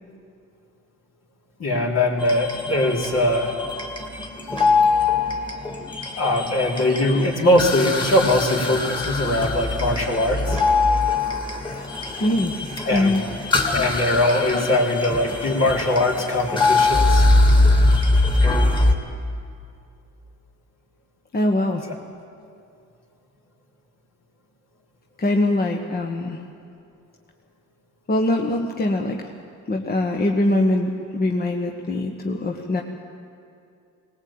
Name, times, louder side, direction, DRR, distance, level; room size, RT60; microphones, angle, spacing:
voice 1, 1.6-3.6 6.2-10.6 12.9-13.2 13.7-17.3, left 1 dB, 60° left, -1 dB, 4.0 m, -21 dB
sound 1, 2.2-18.9, left 2 dB, 15° left, 2.5 m, -22 dB
voice 2, 12.2-12.5 12.9-13.2 13.6-13.8 14.5-14.7 15.0-15.1 21.3-21.8 25.2-26.4 28.1-29.3 29.7-32.8, left 1 dB, 30° left, 2 dB, 1.4 m, -22 dB
19.5 x 18.5 x 8.8 m, 2.5 s
cardioid pair, 90°, 30 cm